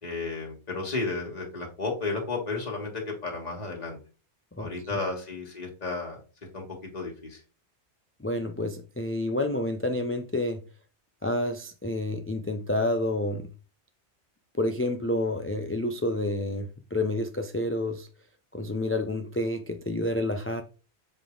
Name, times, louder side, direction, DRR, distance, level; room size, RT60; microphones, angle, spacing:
voice 1, 0.0-4.0 4.6-6.2 6.5-6.6 6.9-7.4, left 3 dB, 35° left, 1.9 m, -33 dB
voice 2, 4.6-5.0 8.2-10.6 11.2-13.5 14.5-18.1 18.5-20.6, left 1 dB, 20° left, 0.4 m, -29 dB
7.3 x 3.5 x 3.8 m
omnidirectional pair, 1.2 m